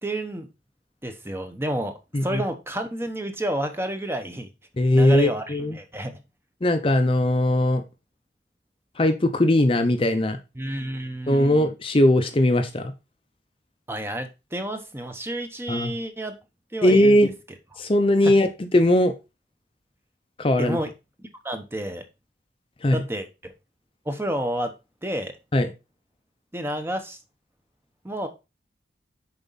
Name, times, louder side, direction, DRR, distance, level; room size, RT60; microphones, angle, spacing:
voice 1, 0.0-0.5 1.0-4.5 4.9-6.2 10.5-11.6 13.9-16.4 16.7-17.2 18.2-18.3 20.6-20.9 21.2-22.0 22.9-23.5 24.1-24.7 25.0-25.3 26.5-27.2 28.0-28.3, right 1 dB, 15° right, 7 dB, 0.9 m, -30 dB
voice 2, 4.8-5.8 6.6-7.8 9.0-10.4 11.3-12.9 15.7-15.9 16.8-17.3 17.8-19.1 20.4-20.8 22.8-23.0 25.5-25.7, left 1 dB, 30° left, 7 dB, 0.6 m, -19 dB
7.0 x 4.8 x 4.1 m, 0.27 s
head